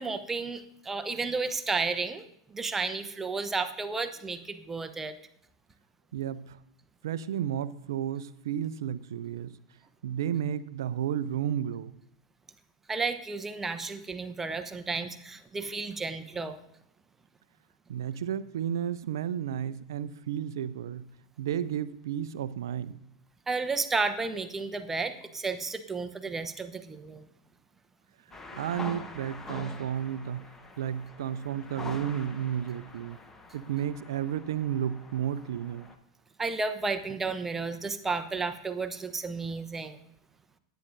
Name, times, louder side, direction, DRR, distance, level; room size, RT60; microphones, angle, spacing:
voice 1, 0.0-2.2 2.5-5.1 12.9-16.6 23.5-27.2 36.4-40.0, right 4 dB, 15° right, 9 dB, 0.9 m, -32 dB
voice 2, 6.1-6.6 7.0-9.6 10.0-11.9 17.9-21.1 21.4-23.0 28.5-30.5 30.8-33.2 33.5-35.9, right 9 dB, 65° right, 15 dB, 0.5 m, -32 dB
sound 1, 28.3-36.0, left 3 dB, 15° left, 1.1 m, -45 dB
18.0 x 9.2 x 2.6 m, 0.73 s
figure-of-eight pair, 90°, 2 cm